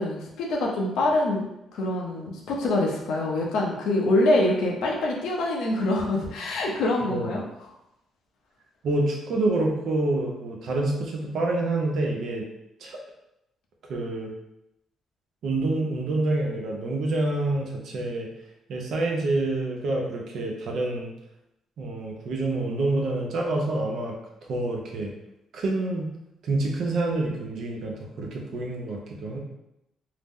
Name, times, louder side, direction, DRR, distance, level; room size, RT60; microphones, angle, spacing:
voice 1, 0.0-1.5 1.7-7.4, left 2 dB, 85° left, -1 dB, 0.6 m, -25 dB
voice 2, 7.0-7.3 8.8-12.5 12.8-13.0 13.9-14.3 15.4-18.3 18.7-21.1 21.8-24.1 24.5-25.1 25.5-26.1 26.4-29.4, right 2 dB, 70° right, 0 dB, 0.6 m, -27 dB
2.8 x 2.0 x 3.6 m, 0.86 s
cardioid pair, 90°, 0 cm